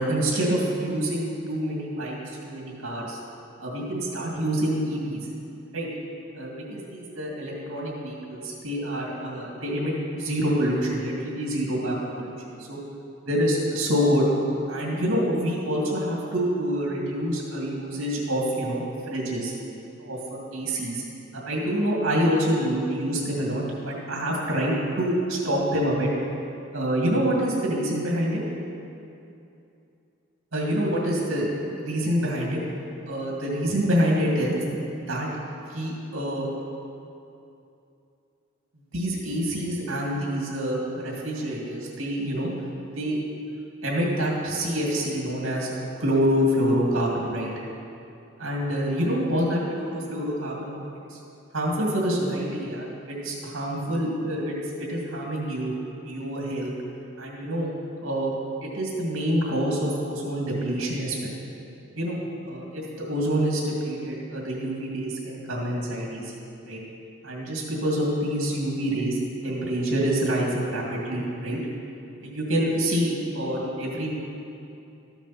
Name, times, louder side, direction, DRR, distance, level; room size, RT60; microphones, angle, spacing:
voice 1, 0.0-2.2 2.4-3.2 3.6-5.2 5.7-5.9 6.3-12.3 12.7-12.8 13.2-14.3 14.7-19.5 20.0-21.0 21.3-26.1 26.7-28.4 30.5-31.5 31.8-32.6 33.1-34.6 35.1-35.3 35.7-36.5 38.9-42.5 42.9-43.2 43.8-45.7 46.0-47.5 48.4-50.8 51.1-51.2 51.5-54.5 54.8-55.8 56.0-56.7 57.2-57.7 58.0-58.3 58.7-61.3 61.9-62.2 62.4-66.2 66.7-66.8 67.2-71.6 72.2-74.1, equal, 70° right, -3 dB, 2.2 m, -26 dB
13.0 x 7.2 x 5.8 m, 2.7 s
head